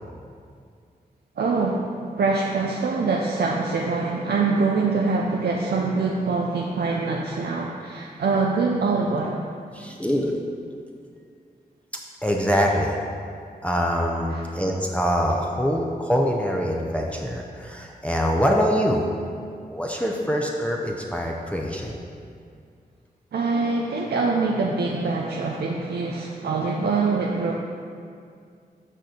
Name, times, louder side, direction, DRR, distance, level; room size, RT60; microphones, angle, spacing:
voice 1, 1.4-1.9 2.2-9.4 14.3-14.4 23.3-27.5, right 4 dB, 85° right, -1 dB, 0.5 m, -24 dB
voice 2, 9.7-10.4 12.2-13.0 13.6-19.0 19.7-22.0, equal, 10° left, -1 dB, 0.7 m, -24 dB
6.6 x 4.2 x 6.4 m, 2.3 s
cardioid pair, 55°, 16 cm